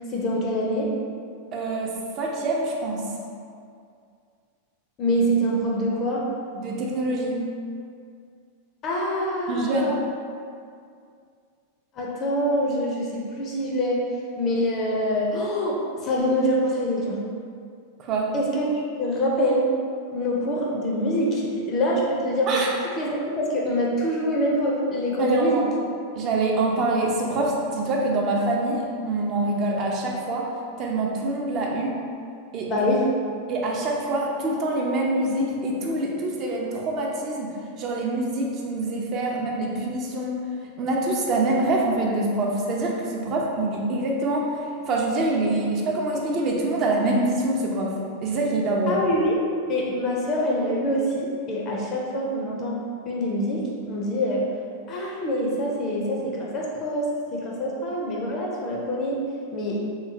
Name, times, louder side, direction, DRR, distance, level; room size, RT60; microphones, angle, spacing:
voice 1, 0.1-0.9 5.0-6.2 8.8-10.0 12.0-14.0 14.4-17.2 18.3-19.7 20.1-22.6 23.0-25.6 32.7-33.0 48.9-49.4 49.7-54.4 54.9-59.2 59.5-59.8, equal, 30° left, -3 dB, 0.5 m, -25 dB
voice 2, 1.5-3.1 6.5-7.4 9.5-10.0 18.0-18.3 22.5-22.7 25.2-25.7 26.1-30.5 30.8-32.0 32.5-32.9 33.5-40.4 40.8-44.6 44.9-47.9 48.2-49.0, right 2 dB, 35° right, -1 dB, 0.5 m, -25 dB
3.3 x 2.8 x 2.7 m, 2.3 s
figure-of-eight pair, 90°, 0 cm